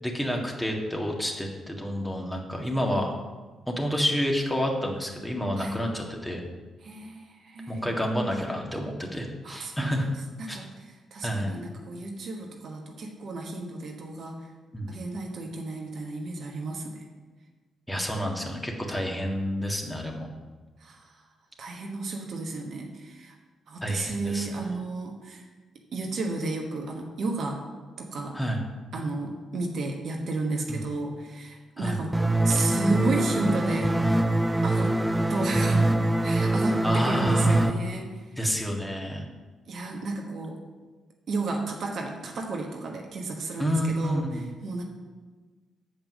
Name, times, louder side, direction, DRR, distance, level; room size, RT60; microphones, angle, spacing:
voice 1, 0.0-3.1 3.7-6.4 7.7-10.1 10.5-10.6 11.2-11.5 14.7-14.9 17.9-20.3 23.8-24.5 28.3-28.6 30.7-30.8 31.8-32.0 36.8-37.7 38.4-39.3 43.6-44.5, equal, 10° left, 0 dB, 1.8 m, -29 dB
voice 2, 6.8-7.8 9.4-10.1 10.4-10.7 11.1-14.5 14.9-17.0 20.8-21.1 21.6-23.4 23.7-25.5 25.9-27.6 28.0-28.4 28.9-33.9 34.6-35.9 36.2-38.2 39.7-40.6 41.3-44.8, right 3 dB, 60° right, 2 dB, 1.2 m, -32 dB
sound 1, 32.1-37.7, right 1 dB, 15° right, 0.6 m, -24 dB
7.5 x 5.3 x 6.3 m, 1.3 s
hypercardioid pair, 45°, 0 cm